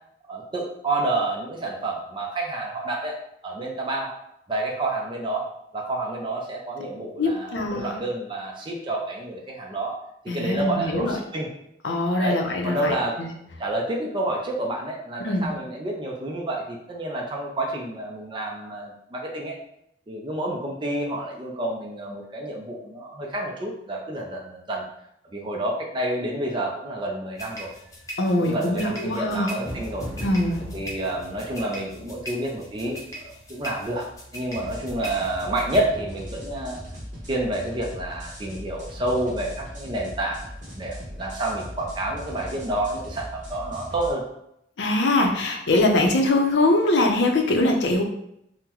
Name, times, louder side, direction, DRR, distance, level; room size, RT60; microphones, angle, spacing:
voice 1, 0.3-3.2 3.4-4.1 4.5-5.5 5.7-10.0 10.3-11.5 12.2-13.2 13.6-19.5 20.1-24.9 25.3-27.7 28.4-30.1 30.7-34.1 34.3-36.8 37.3-40.5 40.8-44.2, right 1 dB, 25° right, -1 dB, 0.4 m, -29 dB
voice 2, 7.2-8.0 10.3-11.2 11.8-13.3 15.2-15.5 28.2-29.5 30.2-30.6 44.8-48.0, left 2 dB, 75° left, 2 dB, 0.6 m, -22 dB
sound 1, 27.4-35.8, equal, 20° left, 0.7 m, -38 dB
sound 2, 34.5-44.1, equal, 45° right, 1.1 m, -39 dB
3.7 x 2.1 x 2.9 m, 0.76 s
head